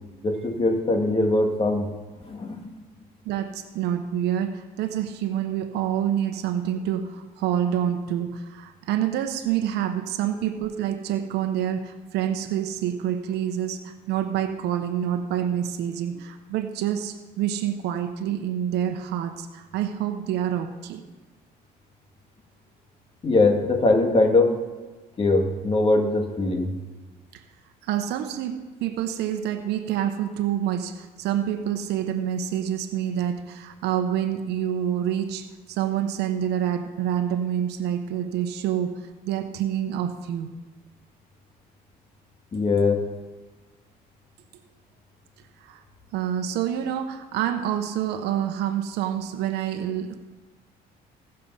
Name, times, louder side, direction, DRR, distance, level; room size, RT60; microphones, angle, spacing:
voice 1, 0.2-1.9 2.2-2.7 23.2-24.6 25.2-26.7 42.5-43.0, left 2 dB, 35° left, 4 dB, 1.9 m, -21 dB
voice 2, 3.2-21.0 27.3-27.4 27.8-38.9 39.2-40.5 45.6-45.8 46.1-50.2, right 10 dB, 80° right, 8 dB, 0.9 m, -27 dB
17.0 x 6.7 x 5.5 m, 1.2 s
cardioid pair, 110°, 17 cm